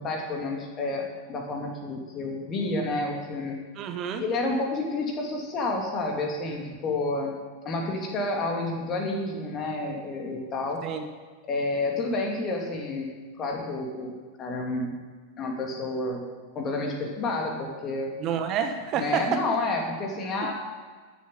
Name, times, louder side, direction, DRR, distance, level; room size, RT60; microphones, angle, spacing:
voice 1, 0.0-3.6 4.2-7.3 7.6-10.8 11.5-13.1 13.4-14.9 15.4-16.2 16.5-18.1 18.9-20.5, left 2 dB, 30° left, 1 dB, 2.5 m, -30 dB
voice 2, 3.8-4.2 10.8-11.1 18.2-19.4 20.4-20.5, right 7 dB, 35° right, 7 dB, 1.1 m, -29 dB
12.0 x 7.3 x 7.4 m, 1.5 s
figure-of-eight pair, 90°, 0 cm